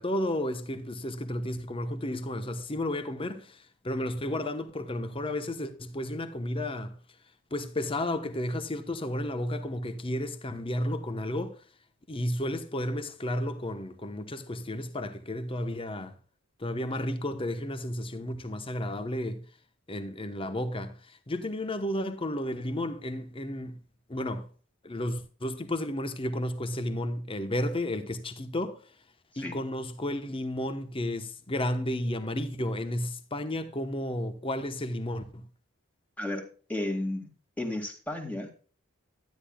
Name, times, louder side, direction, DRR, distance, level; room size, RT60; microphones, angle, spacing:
voice 1, 0.0-6.9 7.5-11.6 12.1-16.1 16.6-19.4 19.9-23.8 24.1-24.5 24.8-28.9 29.4-35.4, left 1 dB, 25° left, 1.0 m, -32 dB
voice 2, 36.7-37.3 37.6-38.7, left 1 dB, 10° left, 2.1 m, -33 dB
12.0 x 10.5 x 2.3 m
head